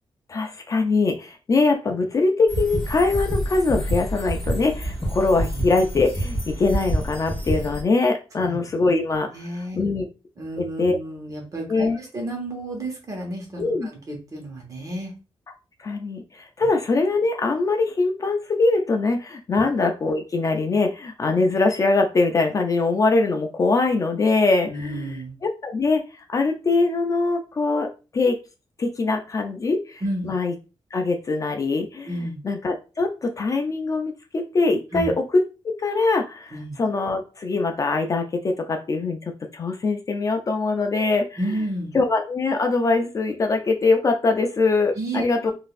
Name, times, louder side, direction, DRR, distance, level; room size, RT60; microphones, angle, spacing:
voice 1, 0.3-9.3 9.8-10.1 10.8-10.9 11.7-12.0 13.6-13.9 15.8-27.9 28.1-28.4 28.8-30.5 30.9-32.1 32.4-41.4 41.9-45.5, left 3 dB, 35° left, 4 dB, 0.4 m, -22 dB
sound 1, 2.5-7.8, equal, 20° left, 1.4 m, -27 dB
voice 2, 9.3-9.8 10.4-15.1 19.5-19.6 24.7-25.4 30.0-30.3 32.1-32.4 34.9-35.1 36.5-36.8 41.4-42.0 44.9-45.5, right 1 dB, 35° right, 0 dB, 1.0 m, -31 dB
3.8 x 2.5 x 2.4 m, 0.32 s
wide cardioid pair, 170°, 10 cm